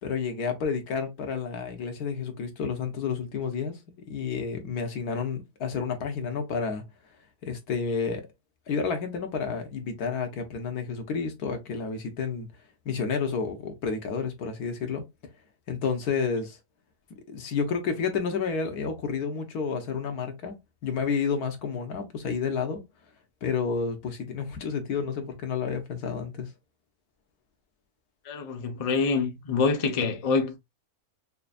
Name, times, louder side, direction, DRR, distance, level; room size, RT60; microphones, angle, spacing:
voice 1, 0.0-3.8 4.1-6.8 7.4-8.2 8.7-12.5 12.8-15.0 15.7-16.6 17.3-22.8 23.4-26.5, left 5 dB, 80° left, 1.6 m, -30 dB
voice 2, 28.2-30.6, left 4 dB, 35° left, 0.6 m, -26 dB
5.5 x 2.6 x 2.3 m
omnidirectional pair, 1.6 m